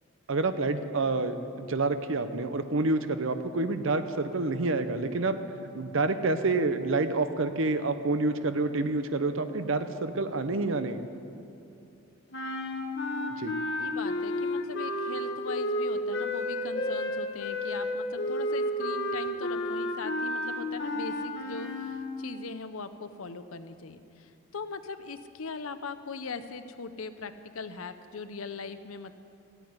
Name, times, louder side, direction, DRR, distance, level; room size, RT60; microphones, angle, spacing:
voice 1, 0.3-5.4 5.7-11.0 13.4-13.5, right 3 dB, 70° right, 10 dB, 0.8 m, -28 dB
sound 1, 12.3-22.0, left 1 dB, 50° left, 1.3 m, -31 dB
voice 2, 13.8-29.1, left 4 dB, 80° left, 11 dB, 0.7 m, -40 dB
13.5 x 9.1 x 9.6 m, 2.7 s
head